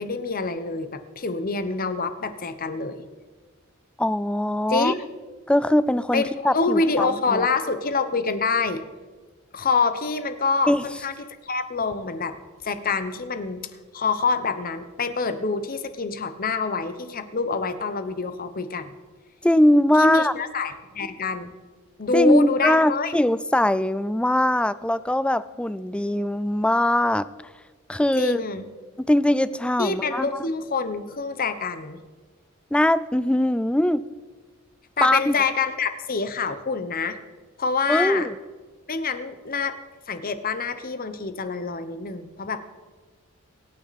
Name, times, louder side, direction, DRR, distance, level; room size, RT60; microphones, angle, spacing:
voice 1, 0.0-3.1 4.7-5.0 6.1-8.8 9.5-11.1 11.4-12.4 12.6-13.7 13.9-18.9 20.0-21.5 22.0-23.1 28.2-28.7 29.8-32.0 35.0-37.2 37.6-38.3 38.9-39.8 40.1-42.6, left 4 dB, 40° left, 10 dB, 1.0 m, -26 dB
voice 2, 4.0-4.9 5.5-7.5 10.7-10.8 19.4-20.3 22.1-27.3 27.9-28.4 29.0-30.3 32.7-34.0 35.0-35.3 37.9-38.4, left 1 dB, 5° left, 16 dB, 0.3 m, -21 dB
23.5 x 9.3 x 4.2 m, 1.4 s
head